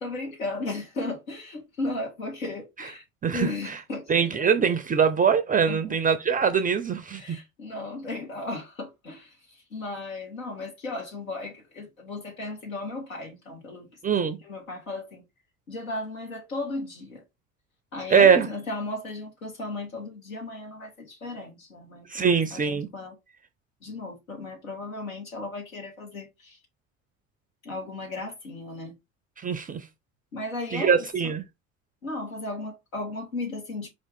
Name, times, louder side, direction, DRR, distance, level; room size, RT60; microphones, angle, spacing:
voice 1, 0.0-3.0 3.3-4.5 5.7-6.0 7.1-13.9 14.4-15.2 15.7-17.2 17.9-23.2 23.8-26.6 27.6-29.0 30.3-31.3 32.0-33.9, left 2 dB, 80° left, 1.7 m, -35 dB
voice 2, 3.2-3.8 4.1-7.4 14.0-14.4 18.1-18.5 22.1-22.9 29.4-29.8 30.7-31.4, right 6 dB, 20° right, 0.5 m, -22 dB
4.8 x 2.5 x 3.6 m
figure-of-eight pair, 65°, 41 cm